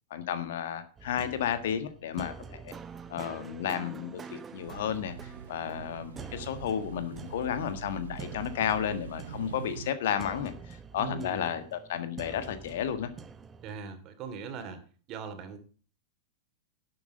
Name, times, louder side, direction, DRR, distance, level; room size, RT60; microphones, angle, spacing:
voice 1, 0.1-2.7 3.1-13.1, left 9 dB, 65° left, 10 dB, 1.5 m, -33 dB
sound 1, 1.0-13.9, right 5 dB, 20° right, 1.1 m, -47 dB
sound 2, 4.6-9.9, right 8 dB, 75° right, 0.7 m, -43 dB
voice 2, 11.0-11.5 13.6-14.8 15.1-15.6, right 5 dB, 40° right, 8 dB, 2.7 m, -40 dB
11.5 x 7.8 x 5.5 m, 0.40 s
hypercardioid pair, 100°, 0 cm